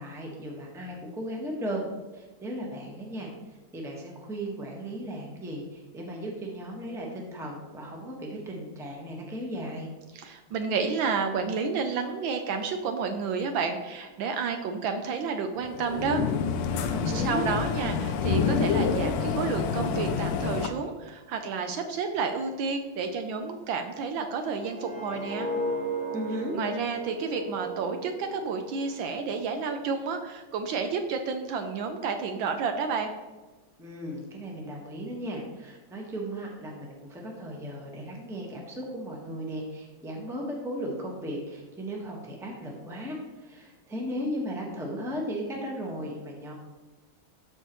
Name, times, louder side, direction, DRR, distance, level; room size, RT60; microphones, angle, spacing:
voice 1, 0.0-1.9 2.1-9.9 16.9-17.5 26.1-26.6 33.8-46.5, equal, ahead, -1 dB, 0.9 m, -36 dB
voice 2, 10.1-16.2 16.8-25.5 26.5-33.1, right 5 dB, 75° right, 6 dB, 1.3 m, -30 dB
sound 1, 15.6-20.7, left 6 dB, 85° left, 1.6 m, -27 dB
sound 2, 24.4-29.4 29.8-30.1, right 1 dB, 45° right, 2.6 m, -35 dB
13.0 x 4.4 x 3.0 m, 1.3 s
omnidirectional pair, 2.4 m